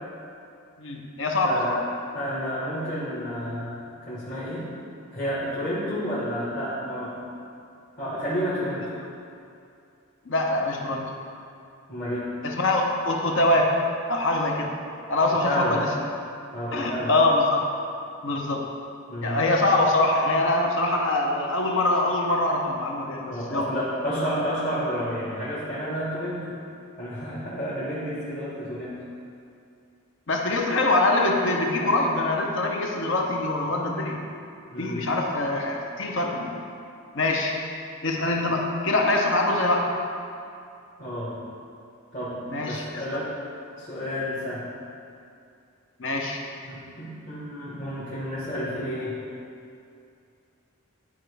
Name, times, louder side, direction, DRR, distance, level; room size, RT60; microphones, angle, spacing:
voice 1, 0.8-1.7 10.3-11.1 12.4-13.8 14.1-14.7 15.1-15.9 16.7-17.7 18.2-18.7 19.2-23.7 30.3-34.2 34.8-36.5 37.1-37.6 38.0-39.9 42.5-43.2 46.0-46.4, left 2 dB, 60° left, 1 dB, 0.8 m, -24 dB
voice 2, 1.4-1.8 2.1-4.7 5.1-7.2 8.0-8.9 11.9-12.3 15.3-15.8 16.5-17.1 19.1-19.4 23.3-26.6 27.0-29.0 34.7-35.1 41.0-41.4 42.1-43.3 43.7-44.7 46.6-49.2, equal, 40° left, -10 dB, 1.3 m, -30 dB
11.5 x 4.6 x 3.4 m, 2.5 s
head